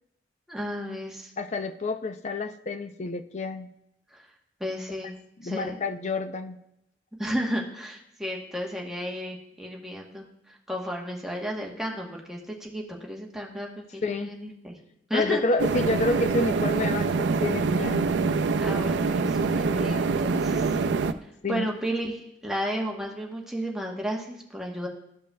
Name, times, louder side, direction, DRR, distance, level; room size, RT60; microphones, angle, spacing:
voice 1, 0.5-1.3 4.1-4.2 4.6-5.1 5.4-5.8 7.2-14.7 15.1-15.4 18.6-20.8 21.5-24.9, equal, 5° right, -1 dB, 1.0 m, -33 dB
voice 2, 1.4-3.7 5.4-6.6 14.0-14.3 15.1-17.1 17.4-18.0 21.4-21.7, left 3 dB, 40° left, 9 dB, 0.5 m, -28 dB
sound 1, 15.6-21.1, right 4 dB, 85° right, 0.4 m, -25 dB
13.5 x 5.2 x 2.3 m, 0.82 s
head